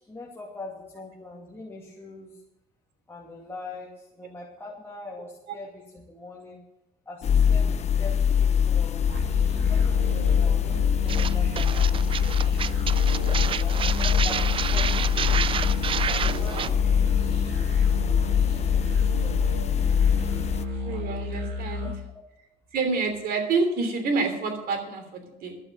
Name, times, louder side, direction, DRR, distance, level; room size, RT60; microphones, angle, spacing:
voice 1, 0.1-2.3 3.1-6.6 7.1-9.1 9.6-11.9 12.2-12.6 13.3-15.4 15.9-16.7 18.3-19.7 22.1-22.2, left 2 dB, 15° left, -4 dB, 2.5 m, -43 dB
sound 1, 7.2-20.6, left 8 dB, 40° left, 0.7 m, -23 dB
sound 2, 9.1-21.9, left 2 dB, 90° right, 3.2 m, -33 dB
sound 3, 11.1-16.7, right 8 dB, 30° right, 0.4 m, -30 dB
voice 2, 16.2-16.7 20.8-21.9 22.7-25.6, right 4 dB, 65° right, 5 dB, 3.1 m, -28 dB
11.5 x 7.7 x 8.9 m, 0.94 s
cardioid pair, 110°, 17 cm